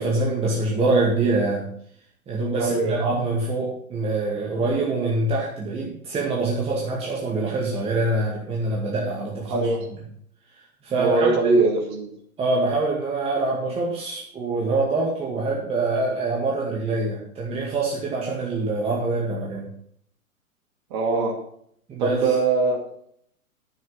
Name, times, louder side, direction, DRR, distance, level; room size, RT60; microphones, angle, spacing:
voice 1, 0.0-1.7 2.3-9.7 10.8-11.6 12.4-19.7 21.9-22.4, right 2 dB, 15° right, -4 dB, 2.1 m, -25 dB
voice 2, 2.6-3.0 9.5-9.8 11.0-12.1 20.9-21.4 22.0-22.8, right 3 dB, 35° right, 0 dB, 2.4 m, -21 dB
10.5 x 7.9 x 5.7 m, 0.66 s
figure-of-eight pair, 115°, 43 cm